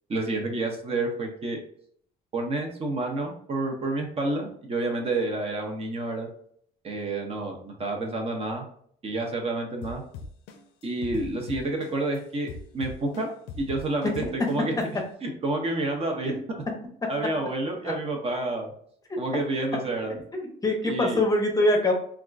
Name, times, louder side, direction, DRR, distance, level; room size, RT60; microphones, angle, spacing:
voice 1, 0.1-1.6 2.3-6.3 6.8-8.6 9.0-10.0 10.8-13.3 13.6-14.7 15.2-16.3 17.1-18.7 19.2-20.1 20.8-21.2, right 2 dB, 35° right, 2 dB, 0.7 m, -29 dB
sound 1, 9.8-12.2 12.5-14.8, left 4 dB, 90° left, 0.5 m, -39 dB
voice 2, 20.3-21.9, left 1 dB, 20° left, 2 dB, 0.7 m, -23 dB
3.4 x 2.4 x 2.4 m, 0.63 s
cardioid pair, 110°, 17 cm